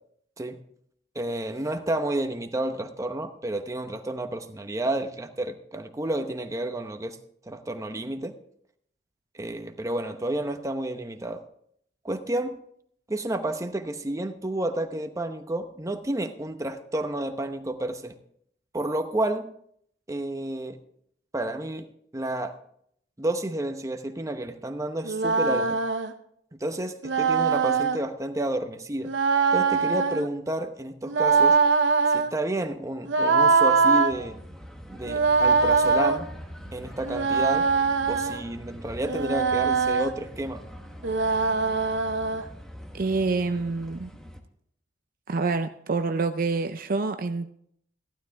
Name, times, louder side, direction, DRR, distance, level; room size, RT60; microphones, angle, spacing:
voice 1, 1.1-7.2 7.5-8.3 9.4-11.4 12.0-12.5 13.1-18.1 18.7-19.5 20.1-20.8 21.3-21.9 22.1-22.6 23.2-25.8 26.5-29.1 29.5-31.6 32.1-34.4 34.9-36.3 36.7-37.7 38.1-40.6, right 1 dB, 15° right, 6 dB, 0.9 m, -30 dB
sound 1, 25.0-26.1 27.0-28.0 29.0-30.3 31.1-32.3 33.1-34.1 35.0-36.2 37.0-38.4 39.0-40.1 41.0-42.4, right 4 dB, 85° right, 0.9 m, -22 dB
sound 2, 34.1-44.4, equal, 5° left, 1.2 m, -43 dB
voice 2, 42.9-44.1 45.3-47.5, right 3 dB, 50° right, 9 dB, 0.5 m, -27 dB
15.0 x 12.0 x 3.5 m, 0.69 s
head